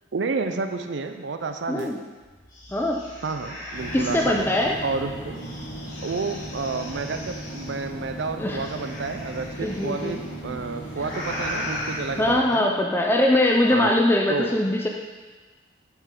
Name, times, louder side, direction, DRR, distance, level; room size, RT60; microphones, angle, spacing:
voice 1, 0.1-1.9 3.2-4.5 4.8-5.4 6.0-12.7 13.7-13.9 14.3-14.5, right 4 dB, 75° right, 7 dB, 0.5 m, -30 dB
voice 2, 1.7-2.0 2.7-3.0 3.9-4.8 8.4-8.6 9.6-10.2 12.2-14.9, left 1 dB, 10° left, 1 dB, 0.4 m, -22 dB
sound 1, 1.8-1.9 2.2-4.6 5.3-7.7 8.6-10.1 10.9-12.0, left 1 dB, 45° left, 1.9 m, -37 dB
sound 2, 3.7-12.3, equal, 80° left, 1.4 m, -37 dB
7.3 x 6.8 x 3.7 m, 1.3 s
head